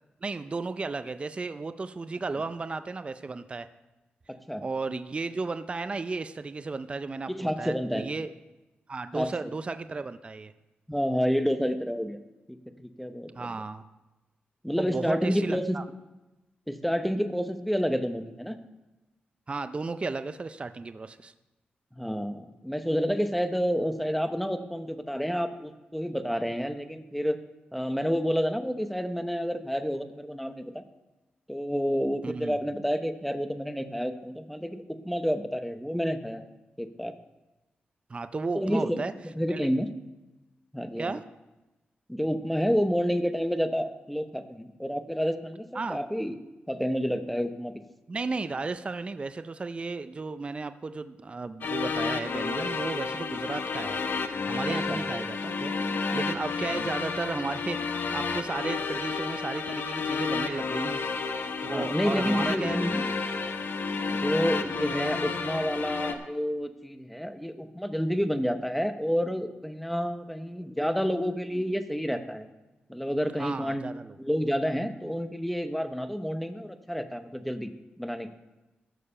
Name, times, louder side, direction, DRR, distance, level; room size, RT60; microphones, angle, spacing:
voice 1, 0.2-3.7 4.6-8.3 8.9-10.5 13.4-13.8 14.8-15.8 19.5-21.3 32.2-32.6 38.1-39.1 39.5-39.7 41.0-41.2 45.7-46.0 48.1-54.0 54.5-61.2 61.6-62.8 73.4-74.2, right 3 dB, 30° right, 11 dB, 0.4 m, -34 dB
voice 2, 4.3-4.6 7.3-8.1 9.1-9.5 10.9-12.2 12.5-13.6 14.6-15.8 16.7-18.6 22.0-27.4 27.7-30.8 31.5-36.5 36.8-37.1 38.6-39.0 39.4-39.9 40.7-41.1 42.1-46.4 46.7-47.7 54.9-55.0 56.7-56.9 61.7-63.0 64.1-72.5 72.9-73.8 74.2-77.7 78.0-78.3, equal, ahead, 9 dB, 0.9 m, -29 dB
sound 1, 51.6-66.1, left 4 dB, 65° left, 0.9 m, -31 dB
14.0 x 6.7 x 5.6 m, 1.1 s
cardioid pair, 90°, 4 cm